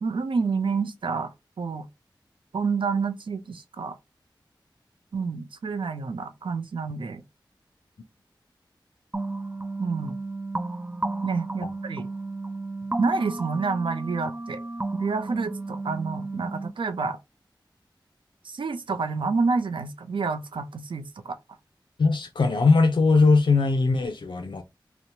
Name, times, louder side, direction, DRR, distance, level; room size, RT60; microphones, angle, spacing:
voice 1, 0.0-1.9 2.5-4.0 5.1-7.2 9.8-10.2 11.2-12.1 13.0-14.6 14.9-17.2 18.4-21.4, right 4 dB, 90° right, 0.4 m, -28 dB
sound 1, 9.1-16.7, right 2 dB, 20° right, 0.3 m, -33 dB
voice 2, 22.0-24.6, left 3 dB, 75° left, 0.4 m, -20 dB
2.9 x 2.0 x 2.6 m
wide cardioid pair, 50°, 8 cm